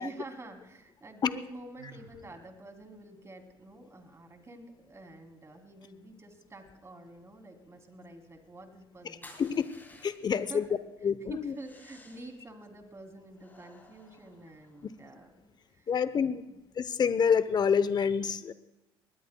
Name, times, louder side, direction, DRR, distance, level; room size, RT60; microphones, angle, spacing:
voice 1, 0.0-9.7 10.4-10.8 11.3-15.9 16.5-16.6, right 2 dB, 25° right, 5 dB, 3.1 m, -48 dB
Sigh, 1.8-2.3, right 4 dB, 90° right, 3.2 m, -51 dB
voice 2, 9.0-9.7 10.0-10.7 11.0-11.5 15.9-16.5 16.8-18.5, left 6 dB, 35° left, 14 dB, 0.8 m, -27 dB
sound 1, 9.2-10.5 11.5-12.4 13.3-15.0, left 2 dB, 15° left, 7.2 m, -55 dB
23.0 x 19.5 x 2.3 m, 0.96 s
hypercardioid pair, 65°, 12 cm